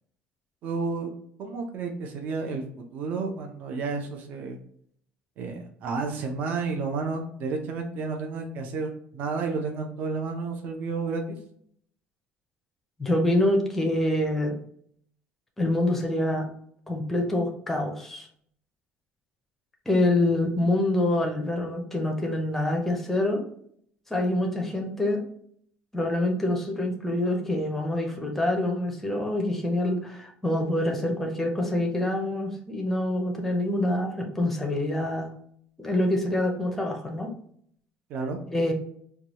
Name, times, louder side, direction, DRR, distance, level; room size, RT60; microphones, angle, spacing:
voice 1, 0.6-1.1 1.4-2.6 2.9-4.6 5.4-11.4 38.1-38.4, right 4 dB, 45° right, 3 dB, 0.6 m, -31 dB
voice 2, 13.0-14.6 15.6-16.5 16.9-18.3 19.9-23.4 24.1-25.2 25.9-35.3 35.8-37.3 38.5-38.7, left 1 dB, 5° left, 1 dB, 0.6 m, -26 dB
4.6 x 2.3 x 2.9 m, 0.64 s
cardioid pair, 180°, 4 cm